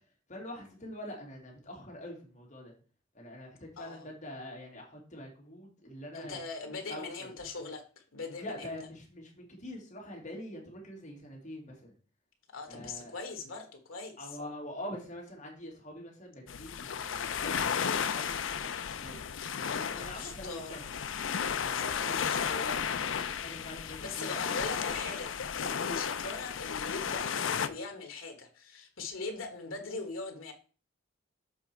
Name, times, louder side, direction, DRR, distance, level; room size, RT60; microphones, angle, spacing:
voice 1, 0.3-2.7 3.1-6.4 6.9-7.3 8.4-11.9 12.7-13.1 14.2-19.2 19.5-20.9 21.5-22.2 22.6-24.6, left 1 dB, 40° left, -1 dB, 2.7 m, -45 dB
voice 2, 3.8-4.1 6.1-7.8 8.1-8.7 12.5-14.2 20.0-20.7 21.7-22.8 23.8-30.5, left 3 dB, 90° left, 4 dB, 1.4 m, -41 dB
sound 1, 16.5-27.7, left 7 dB, 70° left, 0.5 m, -34 dB
7.1 x 5.4 x 4.5 m, 0.38 s
head